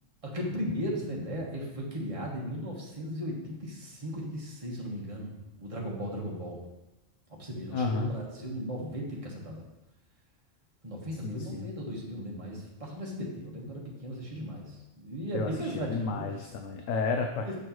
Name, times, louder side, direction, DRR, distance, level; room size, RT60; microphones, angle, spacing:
voice 1, 0.2-6.6 7.3-9.6 10.8-14.7 15.0-16.2 17.4-17.5, equal, 25° right, -3 dB, 1.4 m, -36 dB
voice 2, 7.7-8.2 11.2-11.7 15.3-17.5, left 4 dB, 85° left, 4 dB, 1.0 m, -32 dB
6.4 x 6.2 x 3.0 m, 0.99 s
omnidirectional pair, 1.3 m